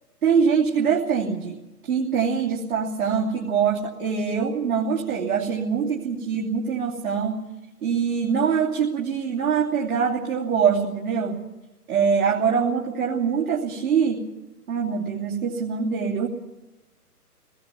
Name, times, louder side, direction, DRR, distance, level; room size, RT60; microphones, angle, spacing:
voice 1, 0.2-7.4 7.8-11.4 11.9-14.2 14.7-16.3, right 6 dB, 65° right, -4 dB, 3.1 m, -23 dB
28.0 x 19.5 x 5.9 m, 1.0 s
hypercardioid pair, 145°, 47 cm